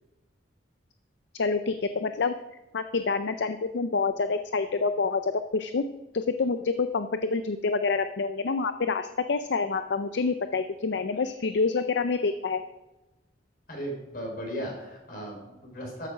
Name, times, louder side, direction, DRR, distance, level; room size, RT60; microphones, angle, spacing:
voice 1, 1.3-2.3 2.7-5.8 6.1-12.6, left 4 dB, 65° left, 10 dB, 0.5 m, -27 dB
voice 2, 13.7-16.1, equal, 50° left, 0 dB, 4.4 m, -36 dB
13.5 x 8.6 x 5.0 m, 1.0 s
head